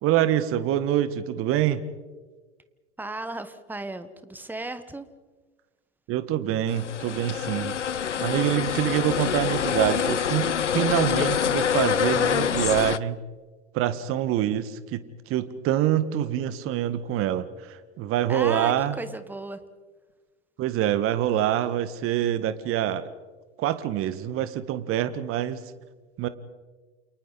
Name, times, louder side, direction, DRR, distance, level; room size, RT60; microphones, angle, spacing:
voice 1, 0.0-1.8 6.1-7.8 8.2-13.2 13.7-19.0 20.6-23.1 23.6-25.7 26.2-26.3, right 11 dB, 40° right, 12 dB, 1.8 m, -25 dB
voice 2, 3.0-5.1 18.3-19.6, right 2 dB, 5° right, 11 dB, 1.5 m, -35 dB
sound 1, 6.7-13.0, left 8 dB, 90° left, 0.6 m, -26 dB
29.5 x 29.0 x 4.2 m, 1.3 s
figure-of-eight pair, 90°, 35 cm